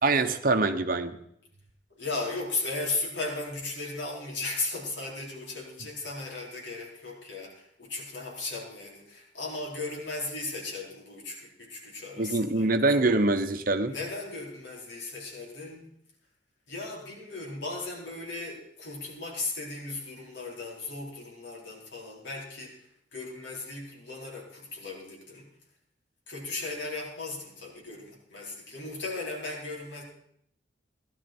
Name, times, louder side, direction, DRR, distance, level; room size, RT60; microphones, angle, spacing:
voice 1, 0.0-1.2 12.2-13.9, right 2 dB, 50° right, 8 dB, 1.0 m, -24 dB
voice 2, 2.0-12.7 13.9-15.9 16.7-22.8 23.1-25.5 26.3-30.0, left 3 dB, 85° left, -2 dB, 4.5 m, -36 dB
17.0 x 12.0 x 4.5 m, 0.71 s
head